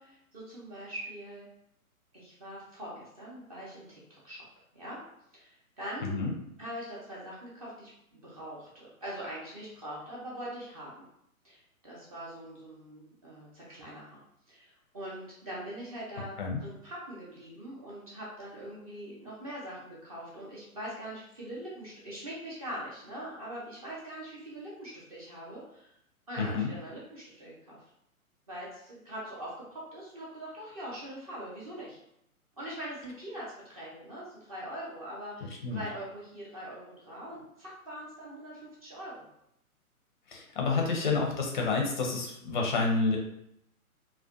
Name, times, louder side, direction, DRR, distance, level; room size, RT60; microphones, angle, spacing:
voice 1, 0.0-1.5 2.1-4.4 4.7-5.0 5.3-6.3 6.6-11.0 11.4-14.2 14.5-25.9 26.3-27.8 28.5-32.0 32.6-39.2, right 1 dB, 25° right, -6 dB, 0.5 m, -42 dB
voice 2, 6.0-6.3 16.4-16.6 26.4-26.7 35.6-35.8 40.3-43.2, left 4 dB, 35° left, 0 dB, 0.4 m, -29 dB
2.4 x 2.1 x 2.4 m, 0.75 s
figure-of-eight pair, 130°, 44 cm